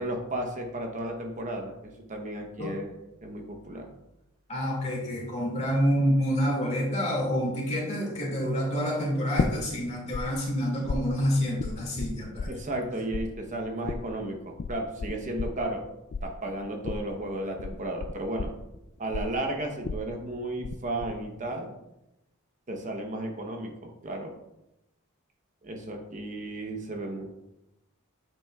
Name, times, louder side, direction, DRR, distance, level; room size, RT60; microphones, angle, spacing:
voice 1, 0.0-2.9 3.2-3.9 12.5-15.8 16.2-18.5 19.0-21.7 22.7-24.3 25.6-27.3, right 1 dB, 35° right, 2 dB, 0.9 m, -34 dB
voice 2, 4.5-12.5, equal, 30° left, -3 dB, 2.1 m, -28 dB
sound 1, 9.4-10.2 10.5-12.9 13.1-20.7 21.0-21.5, left 4 dB, 50° left, 0.3 m, -33 dB
8.5 x 6.1 x 2.3 m, 0.87 s
head